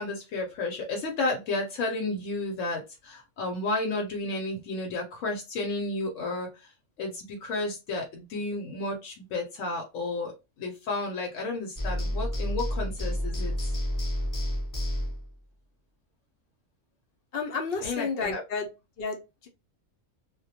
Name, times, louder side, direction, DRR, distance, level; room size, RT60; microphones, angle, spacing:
voice 1, 0.0-10.3 10.6-13.8 17.8-18.4, left 2 dB, 90° left, 1 dB, 1.0 m, -32 dB
sound 1, 11.8-15.3, left 1 dB, 20° left, 0.6 m, -30 dB
voice 2, 17.3-18.7 19.0-19.5, left 4 dB, 60° left, 2 dB, 0.7 m, -31 dB
2.2 x 2.1 x 2.7 m, 0.27 s
omnidirectional pair, 1.3 m